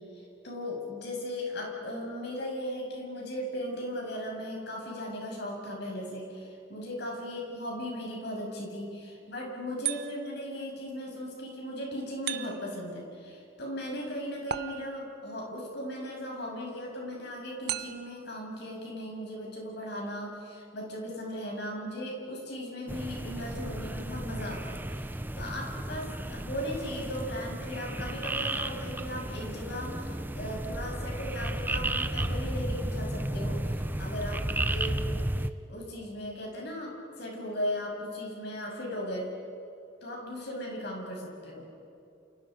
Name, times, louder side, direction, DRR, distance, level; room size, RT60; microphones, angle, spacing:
voice 1, 0.1-35.1 35.3-39.3 40.0-41.6, equal, 55° left, -1 dB, 7.1 m, -37 dB
sound 1, 9.8-10.5 12.3-12.9 14.5-15.2 17.7-18.3, right 10 dB, 55° right, 0.8 m, -36 dB
sound 2, 22.9-35.5, right 1 dB, 10° right, 0.7 m, -33 dB
30.0 x 29.0 x 5.4 m, 2.7 s
head